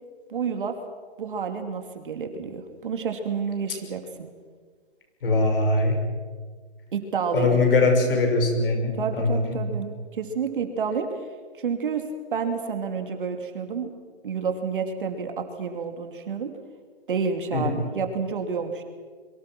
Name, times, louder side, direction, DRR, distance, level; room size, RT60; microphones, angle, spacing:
voice 1, 0.3-0.8 1.2-4.3 6.9-7.5 8.9-11.1 11.6-12.0 12.3-13.9 14.2-16.5 17.1-18.8, right 6 dB, 50° right, 5 dB, 2.8 m, -29 dB
voice 2, 5.2-6.0 7.3-9.6 17.5-17.8, left 3 dB, 55° left, 4 dB, 6.2 m, -22 dB
26.0 x 24.0 x 6.1 m, 1.5 s
hypercardioid pair, 175°, 33 cm